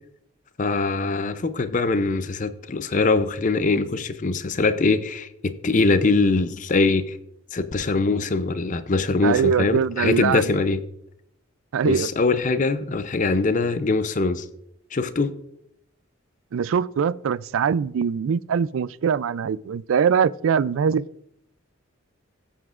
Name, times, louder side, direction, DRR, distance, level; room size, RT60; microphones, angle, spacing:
voice 1, 0.6-7.2 7.5-10.8 11.8-14.5 14.9-15.3, left 3 dB, 40° left, 0.5 m, -22 dB
voice 2, 9.2-10.6 11.7-12.1 16.5-21.1, right 7 dB, 80° right, 0.3 m, -22 dB
15.5 x 8.0 x 2.4 m
head